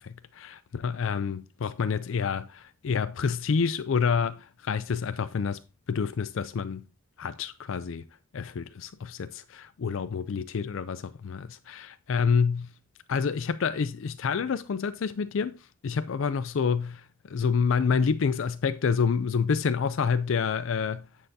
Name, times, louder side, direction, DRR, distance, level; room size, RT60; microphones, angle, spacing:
voice 1, 0.0-0.6 0.8-5.6 5.9-6.8 7.2-8.1 8.3-12.7 13.1-21.1, left 6 dB, 65° left, 0.4 m, -28 dB
9.9 x 6.7 x 2.7 m
head